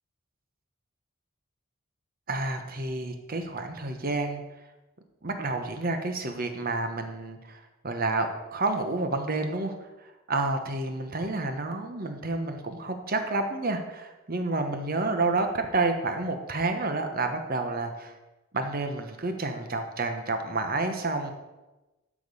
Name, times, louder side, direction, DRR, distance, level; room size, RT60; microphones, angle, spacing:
voice 1, 2.3-4.4 5.2-9.7 10.3-18.1 18.5-21.3, right 3 dB, 45° right, 7 dB, 1.0 m, -29 dB
12.5 x 5.1 x 5.5 m, 1.1 s
head